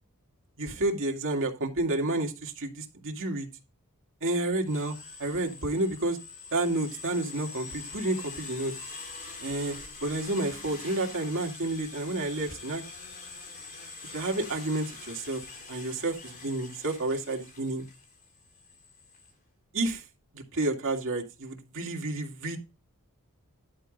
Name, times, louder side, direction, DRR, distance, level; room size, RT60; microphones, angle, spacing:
voice 1, 0.6-3.5 4.2-4.9 5.2-6.2 6.5-8.7 9.4-9.8 10.0-12.8 14.1-15.4 15.7-17.8 19.7-20.0 20.3-22.6, right 2 dB, 65° right, 1 dB, 2.3 m, -30 dB
sound 1, 4.6-19.3, left 4 dB, 45° left, 4.8 m, -44 dB
11.0 x 4.7 x 5.3 m, 0.27 s
head